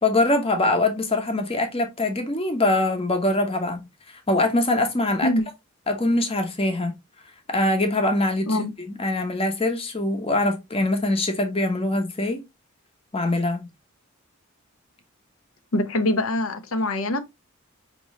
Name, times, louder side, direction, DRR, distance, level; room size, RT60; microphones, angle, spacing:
voice 1, 0.0-3.8 4.3-5.3 5.9-6.9 7.5-12.4 13.1-13.6, left 2 dB, 25° left, 0.9 m, -23 dB
voice 2, 15.7-17.2, left 1 dB, 80° left, 0.9 m, -23 dB
5.3 x 3.0 x 3.1 m
head